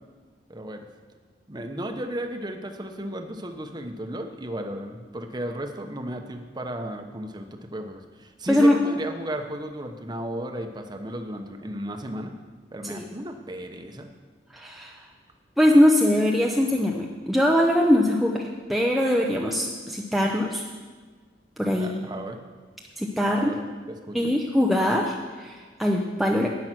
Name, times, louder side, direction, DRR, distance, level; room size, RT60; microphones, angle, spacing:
voice 1, 0.5-0.9 1.5-12.3 12.7-14.1 21.8-22.4 23.3-23.6 23.9-24.3, right 1 dB, 25° right, 5 dB, 1.0 m, -34 dB
voice 2, 14.5-14.9 15.6-18.4 18.7-20.6 21.6-21.9 23.0-23.5 24.1-26.5, left 1 dB, ahead, -1 dB, 0.7 m, -21 dB
11.0 x 9.5 x 6.0 m, 1.4 s
head